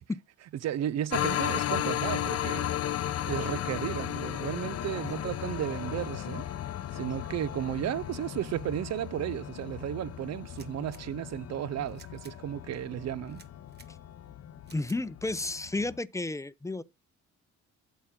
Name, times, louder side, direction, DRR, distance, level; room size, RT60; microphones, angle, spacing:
voice 1, 0.6-2.7 3.2-6.5 6.9-13.4, right 11 dB, 60° right, 0.6 m, -34 dB
sound 1, 1.1-16.0, left 11 dB, 55° left, 0.7 m, -35 dB
sound 2, 10.5-11.0 11.9-12.4 13.3-13.9 14.6-15.0, right 5 dB, 35° right, 1.4 m, -55 dB
voice 2, 14.7-16.8, left 2 dB, 10° left, 0.6 m, -32 dB
8.7 x 7.2 x 3.8 m
cardioid pair, 90°, 30 cm